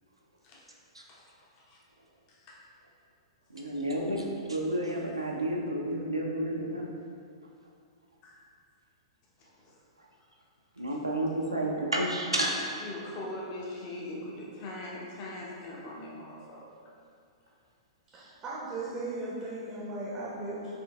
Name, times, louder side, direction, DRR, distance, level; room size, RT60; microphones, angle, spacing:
voice 1, 1.1-1.8 2.3-2.6 4.9-5.1 8.2-8.3 9.6-9.8 10.9-11.0 12.5-16.6, left 1 dB, 35° left, -5 dB, 0.7 m, -42 dB
voice 2, 3.5-6.9 10.8-12.6, right 1 dB, 85° right, -1 dB, 0.5 m, -31 dB
voice 3, 18.1-20.7, right 2 dB, 20° right, -7 dB, 0.6 m, -37 dB
4.3 x 3.2 x 2.3 m, 2.3 s
figure-of-eight pair, 105°, 3 cm